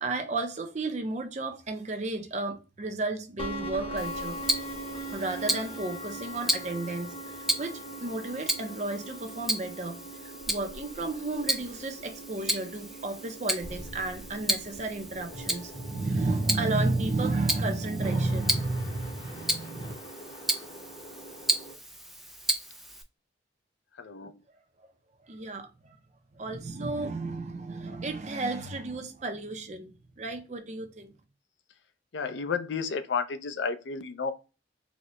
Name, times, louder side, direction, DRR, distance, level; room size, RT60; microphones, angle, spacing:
voice 1, 0.0-4.4 5.1-19.9 24.8-24.9 25.3-26.0 26.4-31.1, right 2 dB, 40° right, 0.6 m, -32 dB
sound 1, 3.4-21.7, right 1 dB, 30° left, 0.9 m, -42 dB
Tick-tock, 4.0-23.0, right 1 dB, ahead, 0.3 m, -34 dB
voice 2, 24.0-24.3 32.1-34.3, left 5 dB, 75° left, 0.5 m, -32 dB
4.1 x 2.2 x 2.9 m
head